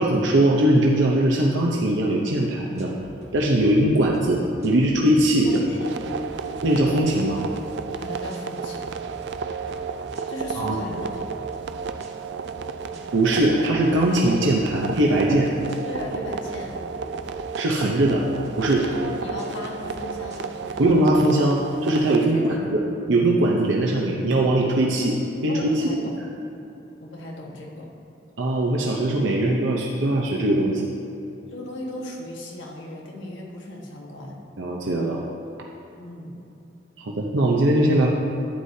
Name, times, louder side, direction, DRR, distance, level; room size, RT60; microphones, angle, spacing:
voice 1, 0.0-2.9 3.3-5.7 6.6-7.4 10.6-10.8 13.1-15.5 17.5-18.2 18.6-18.9 20.8-25.8 28.4-30.8 34.6-35.2 37.0-38.1, right 1 dB, 90° right, -2 dB, 0.8 m, -21 dB
sound 1, 2.8-3.4 3.7-3.9 4.1-4.3 4.6-5.2 5.5-5.7 6.0-6.6 6.9-7.1 7.4-8.0 8.3-8.5 8.8-9.3 9.7-9.8 10.1-10.7 11.1-11.3 11.5-12.1 12.4-12.6 12.9-13.6 13.8-14.9 15.2-15.4 15.7-16.3 16.6-16.8 17.1-18.2 18.4-19.1 19.4-19.6 19.8-20.5 20.8-20.9, equal, 35° right, 1.2 m, -44 dB
voice 2, 5.4-6.0 8.0-9.0 10.3-11.4 15.8-16.9 18.9-20.9 22.2-22.7 25.5-26.2 27.0-27.9 31.5-34.4 36.0-36.4, left 1 dB, 85° left, -2 dB, 1.5 m, -37 dB
sound 2, 5.8-22.3, right 5 dB, 60° right, 0.3 m, -33 dB
11.5 x 9.5 x 2.8 m, 2.7 s
head